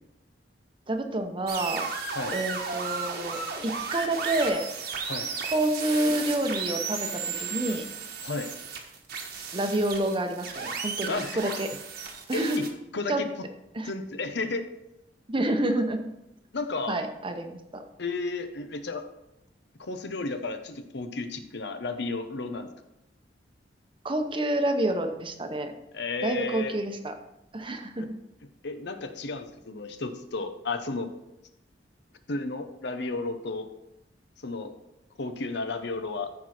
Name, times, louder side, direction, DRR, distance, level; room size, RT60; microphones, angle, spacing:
voice 1, 0.9-1.9 2.3-4.7 5.4-7.9 9.5-11.7 12.3-12.6 13.1-13.3 13.7-13.9 15.3-16.0 16.9-17.8 24.0-25.7 26.2-27.2 27.5-28.1, right 1 dB, 30° right, 6 dB, 0.9 m, -28 dB
sound 1, 1.5-12.7, right 5 dB, 60° right, 1.3 m, -34 dB
voice 2, 8.2-8.5 11.1-11.4 12.3-12.7 12.9-13.3 13.8-14.7 16.5-17.0 18.0-19.0 19.8-22.7 25.9-26.8 28.0-28.1 28.6-31.1 32.3-33.7 34.4-34.7 35.2-36.3, left 3 dB, 70° left, 8 dB, 0.9 m, -33 dB
14.0 x 4.7 x 4.3 m, 0.87 s
head